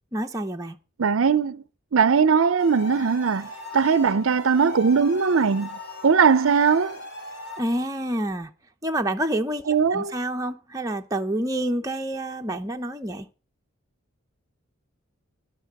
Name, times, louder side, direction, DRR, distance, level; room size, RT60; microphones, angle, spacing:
voice 1, 0.1-0.8 7.6-8.5 8.8-13.3, right 1 dB, 15° right, 0.8 m, -28 dB
voice 2, 1.0-1.6 1.9-5.8 6.0-7.0 9.7-10.1, right 6 dB, 70° right, 0.5 m, -20 dB
sound 1, 2.6-7.6, left 2 dB, 50° left, 2.6 m, -39 dB
11.5 x 8.6 x 5.8 m
head